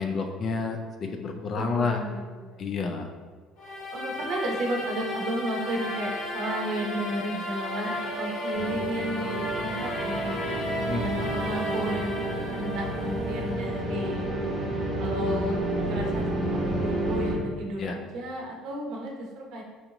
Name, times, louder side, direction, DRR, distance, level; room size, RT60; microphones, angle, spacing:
voice 1, 0.0-2.0 2.6-3.1 10.8-11.0 17.8-18.0, left 4 dB, 35° left, 4 dB, 0.3 m, -29 dB
voice 2, 1.5-3.1 3.9-10.4 11.0-14.3 15.0-15.5 15.8-16.3 16.5-19.6, right 1 dB, 60° right, 0 dB, 0.7 m, -33 dB
sound 1, 3.6-13.5, left 1 dB, 60° left, 1.0 m, -34 dB
sound 2, 8.5-17.4, right 1 dB, 25° right, 0.8 m, -30 dB
4.4 x 2.6 x 2.9 m, 1.5 s
cardioid pair, 170°, 0 cm